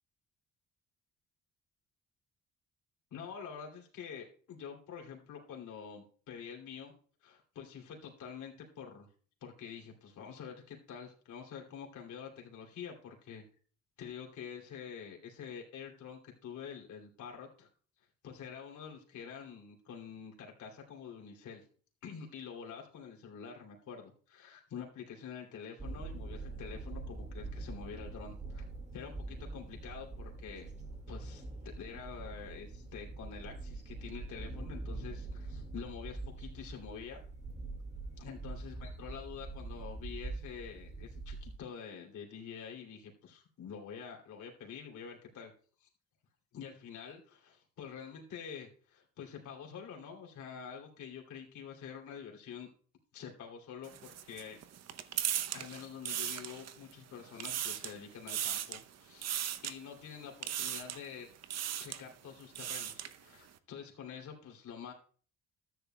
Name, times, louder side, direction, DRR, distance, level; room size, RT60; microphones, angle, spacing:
voice 1, 3.1-6.9 7.2-9.1 9.4-13.4 14.0-17.7 18.2-21.6 22.0-28.6 28.9-30.7 31.1-37.2 38.2-45.5 45.8-45.9 46.5-52.7 53.1-54.6 55.5-61.3 61.8-64.9, left 7 dB, 75° left, 0 dB, 2.9 m, -47 dB
sound 1, 25.8-41.6, right 3 dB, 25° right, 1.9 m, -44 dB
sound 2, 53.8-56.9 57.3-58.0 58.3-58.8 59.2-59.7 60.4-61.1 61.4-62.0 62.4-63.2, right 10 dB, 60° right, 0.7 m, -37 dB
13.5 x 9.6 x 2.2 m, 0.43 s
cardioid pair, 90°, 30 cm